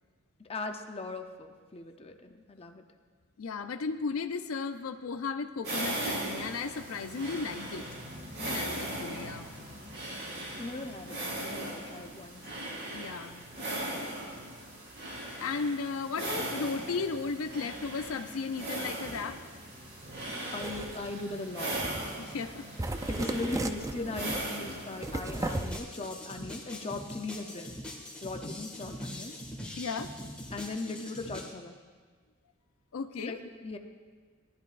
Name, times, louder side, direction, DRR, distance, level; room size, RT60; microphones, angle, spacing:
voice 1, 0.4-2.8 8.4-8.7 10.6-12.4 20.5-21.8 23.1-27.8 28.2-29.4 30.5-31.8 33.2-33.8, left 2 dB, 30° left, 5 dB, 0.7 m, -39 dB
voice 2, 3.4-7.8 8.4-9.5 11.7-11.8 12.9-13.5 15.4-19.4 22.2-22.7 29.8-30.1 32.9-33.4, left 4 dB, 85° left, 8 dB, 0.5 m, -35 dB
sound 1, 5.6-25.5, right 1 dB, 55° right, 4.2 m, -38 dB
sound 2, 20.6-21.1 21.7-22.1 22.4-22.5 22.8-24.4 25.0-25.8, right 2 dB, 15° right, 0.4 m, -35 dB
sound 3, 25.3-31.5, left 1 dB, 5° left, 1.8 m, -42 dB
18.5 x 11.0 x 2.5 m, 1.5 s
head